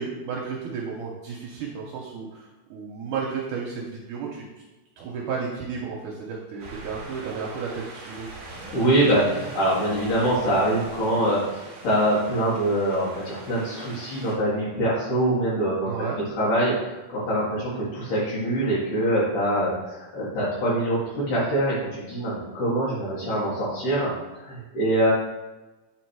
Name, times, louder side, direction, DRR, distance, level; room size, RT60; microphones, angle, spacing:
voice 1, 0.0-4.4 5.0-8.3 15.9-16.2, right 5 dB, 75° right, -2 dB, 2.2 m, -33 dB
Wind, 6.6-14.4, right 2 dB, 50° right, 1.6 m, -41 dB
voice 2, 8.5-15.9 16.4-24.1 24.4-25.1, right 1 dB, 65° left, -7 dB, 3.1 m, -24 dB
8.6 x 4.4 x 4.7 m, 1.1 s
omnidirectional pair, 4.0 m